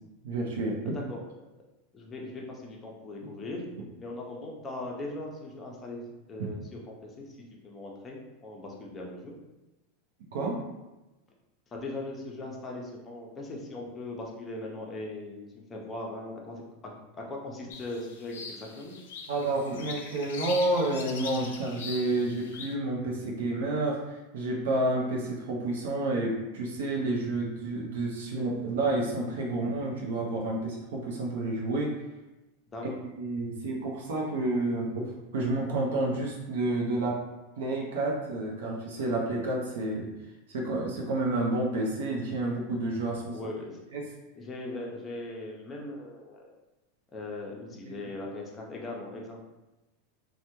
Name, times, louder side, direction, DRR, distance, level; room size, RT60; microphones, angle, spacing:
voice 1, 0.2-0.9 6.4-6.5 10.3-10.6 19.3-31.9 32.8-32.9 33.2-37.2 37.6-40.1 40.5-43.4 43.9-44.0 47.9-48.0, right 2 dB, 90° right, -2 dB, 0.6 m, -30 dB
voice 2, 0.9-1.2 1.9-3.6 4.0-6.0 6.3-7.4 7.6-9.4 11.7-16.6 17.3-19.0 32.7-32.8 43.3-43.8 44.4-46.4 47.1-49.5, left 2 dB, 15° left, -1 dB, 0.4 m, -39 dB
sound 1, 17.7-22.7, left 5 dB, 75° left, 0.4 m, -42 dB
3.3 x 2.1 x 2.9 m, 1.0 s
supercardioid pair, 165°, 0 cm